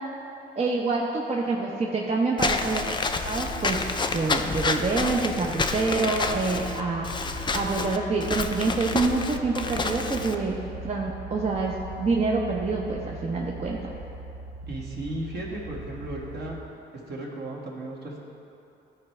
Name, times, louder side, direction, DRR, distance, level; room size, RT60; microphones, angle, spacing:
voice 1, 0.6-2.8 3.2-3.8 4.1-7.1 7.5-13.8, right 3 dB, 35° right, -2 dB, 0.8 m, -26 dB
Walk footsteps / Squeak, 2.4-10.3, left 4 dB, 25° left, 0.5 m, -29 dB
sound 1, 3.1-16.6, right 2 dB, 85° right, 1.1 m, -40 dB
voice 2, 14.7-16.6 17.1-18.2, right 1 dB, 55° right, -4 dB, 1.8 m, -35 dB
13.0 x 4.6 x 3.3 m, 2.9 s
cardioid pair, 90°, 20 cm